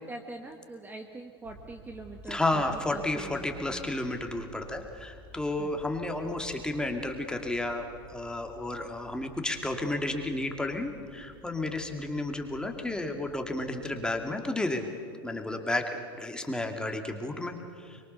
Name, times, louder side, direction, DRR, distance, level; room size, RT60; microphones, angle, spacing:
voice 1, 0.0-3.9 5.6-5.8, right 2 dB, 15° right, 4 dB, 1.6 m, -44 dB
sound 1, 1.4-14.0, right 2 dB, 55° right, 5.2 m, -52 dB
voice 2, 2.3-14.9 15.2-18.0, left 2 dB, 5° left, 4 dB, 2.6 m, -32 dB
24.0 x 23.0 x 6.9 m, 2.3 s
hypercardioid pair, 90°, 13 cm